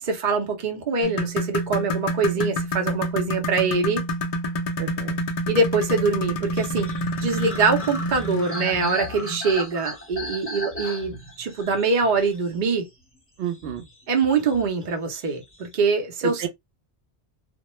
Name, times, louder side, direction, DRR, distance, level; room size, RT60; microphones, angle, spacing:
voice 1, 0.0-4.0 5.5-6.9 7.2-12.9 14.1-16.5, right 4 dB, 50° right, 0.8 m, -24 dB
sound 1, 1.0-9.4 10.8-11.0 11.5-11.6 12.2-12.3, equal, 55° left, 0.4 m, -28 dB
voice 2, 4.8-5.2 13.4-13.8 16.4-16.5, right 10 dB, 90° right, 0.9 m, -30 dB
sound 2, 6.6-13.0 13.5-14.9 15.1-15.7, left 1 dB, 15° left, 0.8 m, -37 dB
2.2 x 2.1 x 2.9 m
omnidirectional pair, 1.1 m